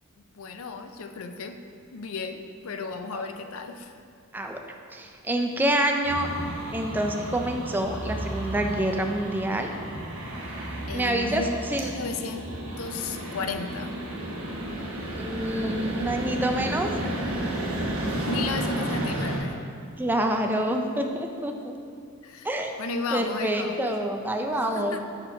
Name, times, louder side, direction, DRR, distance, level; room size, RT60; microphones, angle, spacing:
voice 1, 0.3-1.6 1.9-3.9 10.9-11.5 11.9-12.5 12.8-14.0 18.0-19.6 22.2-22.5 22.8-23.9 24.7-25.0, left 4 dB, 75° left, 7 dB, 0.4 m, -34 dB
voice 2, 4.9-6.3 6.7-9.7 10.9-11.4 11.7-11.9 15.2-16.9 20.0-21.8 22.4-22.9 23.1-25.0, right 1 dB, 10° right, 3 dB, 0.4 m, -27 dB
sound 1, 6.0-19.4, right 1 dB, 75° right, 1.0 m, -32 dB
5.2 x 5.0 x 4.8 m, 2.3 s
head